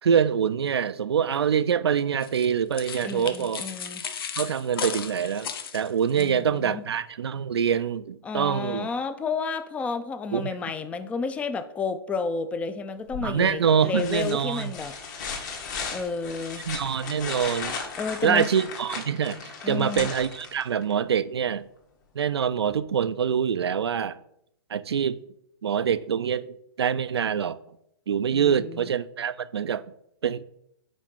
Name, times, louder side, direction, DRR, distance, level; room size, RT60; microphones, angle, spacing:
voice 1, 0.0-3.6 4.4-8.9 10.3-10.5 13.2-14.7 16.7-17.8 18.2-21.6 22.2-24.2 24.7-25.2 25.6-26.5 26.8-27.6 28.1-29.9 30.2-30.4, right 7 dB, 75° right, 0.4 m, -25 dB
sound 1, 2.2-6.3, left 7 dB, 60° left, 0.7 m, -35 dB
voice 2, 3.0-4.0 6.1-6.8 8.2-14.9 15.9-16.6 18.0-18.5 19.6-20.1 28.3-28.9, left 5 dB, 10° left, 0.4 m, -31 dB
sound 2, 13.1-13.5 14.0-20.9 22.7-22.8, left 5 dB, 45° left, 1.4 m, -36 dB
5.1 x 4.3 x 5.4 m
figure-of-eight pair, 125°, 13 cm